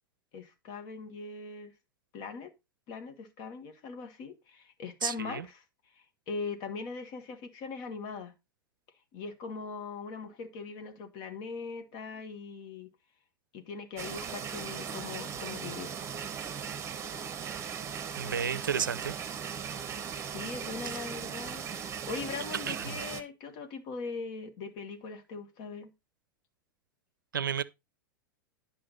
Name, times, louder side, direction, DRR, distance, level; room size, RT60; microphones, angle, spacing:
voice 1, 0.3-1.7 2.1-2.5 2.9-5.6 6.3-8.3 9.1-12.9 13.5-16.0 20.1-21.7 22.0-25.9, left 4 dB, 45° left, 1.8 m, -40 dB
voice 2, 5.0-5.5 18.2-19.2 22.7-22.9 27.3-27.6, right 7 dB, 70° right, 0.5 m, -32 dB
sound 1, 14.0-23.2, right 7 dB, 25° right, 1.1 m, -38 dB
10.5 x 5.7 x 4.1 m
figure-of-eight pair, 85°, 11 cm